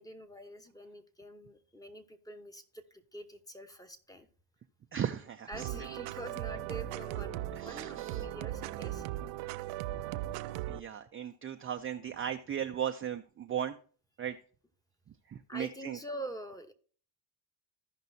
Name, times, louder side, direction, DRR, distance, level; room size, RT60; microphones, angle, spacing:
voice 1, 0.0-4.3 5.5-9.0 15.5-16.7, right 1 dB, 5° left, 8 dB, 0.9 m, -45 dB
voice 2, 4.9-5.7 7.5-8.3 10.3-13.8 14.2-14.4 15.3-16.0, right 9 dB, 30° right, 6 dB, 0.4 m, -37 dB
sound 1, 5.5-10.8, right 14 dB, 80° right, 0.6 m, -38 dB
15.0 x 5.3 x 2.7 m, 0.42 s
cardioid pair, 95°, 48 cm